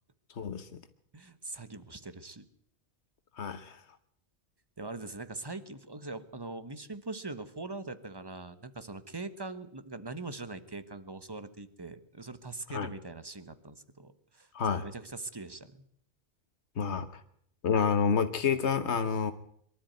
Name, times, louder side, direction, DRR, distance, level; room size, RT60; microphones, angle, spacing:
voice 1, 0.4-0.8 3.4-3.8 12.7-12.9 14.5-14.8 16.8-17.1 17.6-19.3, left 6 dB, 90° left, 10 dB, 1.4 m, -28 dB
voice 2, 1.1-2.5 4.8-14.5 14.8-15.8, right 3 dB, 20° right, 12 dB, 1.3 m, -42 dB
23.5 x 12.5 x 9.4 m, 0.68 s
omnidirectional pair, 1.1 m